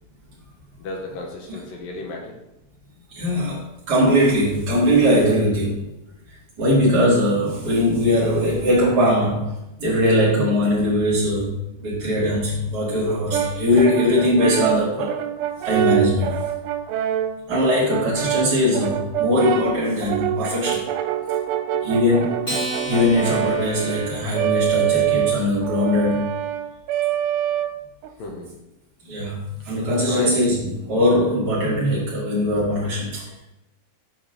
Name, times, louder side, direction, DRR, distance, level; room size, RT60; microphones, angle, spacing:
voice 1, 0.8-2.4 28.2-28.5 30.1-30.4, left 2 dB, 70° left, 0 dB, 2.5 m, -32 dB
voice 2, 3.1-5.8 6.6-15.2 15.6-16.4 17.5-20.9 21.8-22.4 22.8-26.3 29.0-33.3, left 1 dB, 35° right, -8 dB, 1.7 m, -20 dB
Brass instrument, 13.3-28.1, right 12 dB, 80° right, 2.6 m, -25 dB
Acoustic guitar, 22.4-25.1, equal, 20° left, 1.4 m, -33 dB
8.5 x 3.9 x 6.5 m, 0.89 s
omnidirectional pair, 5.0 m